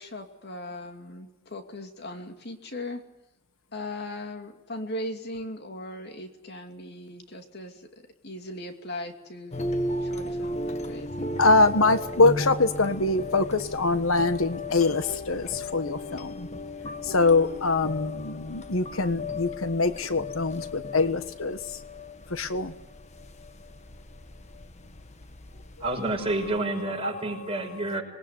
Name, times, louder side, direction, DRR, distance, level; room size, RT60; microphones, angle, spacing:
voice 1, 0.0-3.0 3.7-7.9 8.2-9.6 10.0-11.6, left 1 dB, 55° left, 5 dB, 2.7 m, -38 dB
sound 1, 9.5-26.6, left 1 dB, 35° left, 1.4 m, -36 dB
voice 2, 11.4-16.5 17.0-21.6 22.3-22.7 27.0-27.2 27.5-27.6, left 3 dB, 80° left, 11 dB, 1.4 m, -24 dB
voice 3, 25.8-28.0, right 2 dB, 30° right, 2 dB, 6.0 m, -29 dB
26.5 x 21.0 x 9.7 m, 0.96 s
head